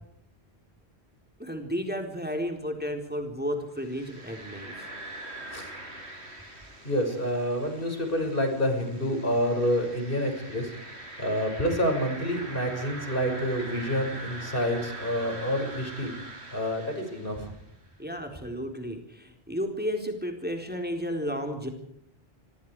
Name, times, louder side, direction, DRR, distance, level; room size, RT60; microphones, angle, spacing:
voice 1, 1.4-4.9 18.0-21.7, equal, 10° right, 3 dB, 4.1 m, -33 dB
sound 1, 3.8-17.7, right 2 dB, 90° right, 6.5 m, -42 dB
voice 2, 6.8-10.7 11.2-16.1 16.5-17.5, equal, 55° left, 5 dB, 6.6 m, -28 dB
28.5 x 25.0 x 4.9 m, 0.73 s
omnidirectional pair, 1.1 m